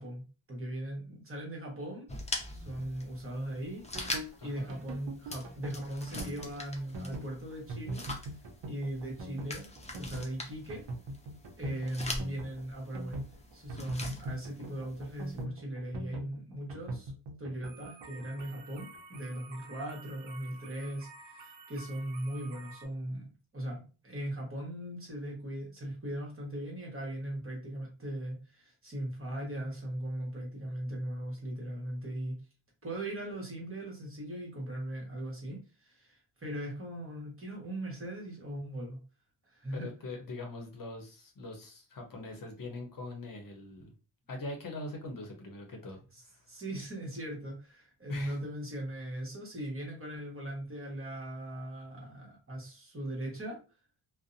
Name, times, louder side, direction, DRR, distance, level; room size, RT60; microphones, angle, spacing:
voice 1, 0.0-2.1 2.5-8.1 8.7-10.9 11.6-13.2 13.5-17.1 17.4-32.4 32.8-39.0 39.4-39.9 46.5-53.6, right 1 dB, 30° right, -1 dB, 1.1 m, -39 dB
sound 1, 2.1-15.4, left 2 dB, 15° left, 0.6 m, -43 dB
sound 2, 3.8-22.8, right 2 dB, 75° right, 0.6 m, -44 dB
voice 2, 4.4-4.7 39.7-43.9 44.3-46.0 46.2-46.5 48.1-48.4, left 2 dB, 50° left, 2 dB, 0.7 m, -42 dB
2.5 x 2.1 x 2.5 m, 0.34 s
cardioid pair, 85°, 43 cm